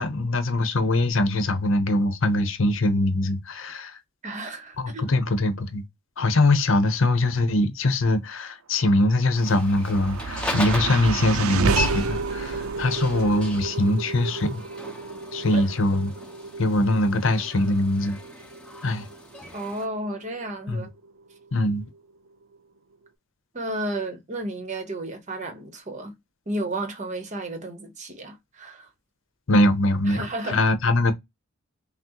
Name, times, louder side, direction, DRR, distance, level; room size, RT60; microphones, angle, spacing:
voice 1, 0.0-4.0 4.8-5.8 6.2-14.6 15.3-16.1 16.6-18.2 18.8-19.1 20.7-20.9 21.5-21.8 29.5-31.1, left 1 dB, 65° left, 0.7 m, -22 dB
voice 2, 4.2-5.1 15.5-15.6 19.5-20.9 23.5-26.1 26.5-28.9 30.1-30.6, right 1 dB, 35° right, 0.9 m, -32 dB
sound 1, 9.1-21.4, right 4 dB, 80° right, 0.5 m, -31 dB
sound 2, 9.4-19.9, left 1 dB, 5° left, 1.0 m, -37 dB
5.8 x 2.0 x 2.9 m
head